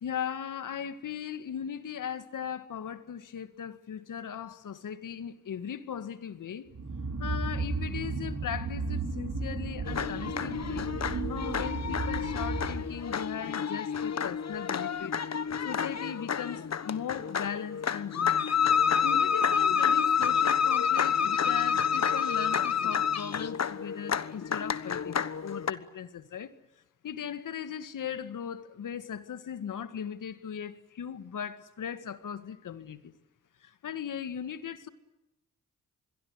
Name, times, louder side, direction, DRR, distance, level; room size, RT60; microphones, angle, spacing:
voice 1, 0.0-6.7 7.2-10.9 11.3-15.2 15.6-18.5 19.0-26.5 27.0-33.1 33.6-34.9, left 8 dB, 70° left, 2.0 m, -38 dB
sound 1, 6.7-13.2, right 3 dB, 60° right, 5.3 m, -34 dB
sound 2, 9.9-25.7, left 7 dB, 55° left, 1.4 m, -29 dB
27.0 x 22.0 x 8.2 m
cardioid pair, 60°, 32 cm